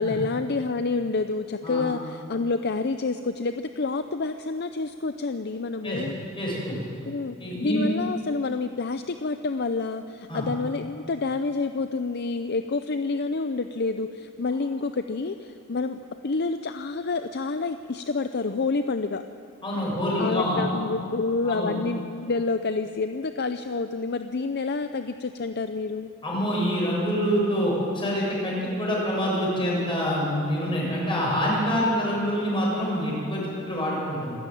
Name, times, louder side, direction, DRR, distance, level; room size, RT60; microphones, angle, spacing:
voice 1, 0.0-6.2 7.1-19.2 20.2-26.1, left 3 dB, 50° left, 9 dB, 0.6 m, -28 dB
voice 2, 6.4-7.0 7.4-7.8 10.3-10.4 19.6-20.9 21.4-21.7 26.2-34.3, equal, 25° left, -4 dB, 7.4 m, -26 dB
26.0 x 13.5 x 9.3 m, 2.6 s
head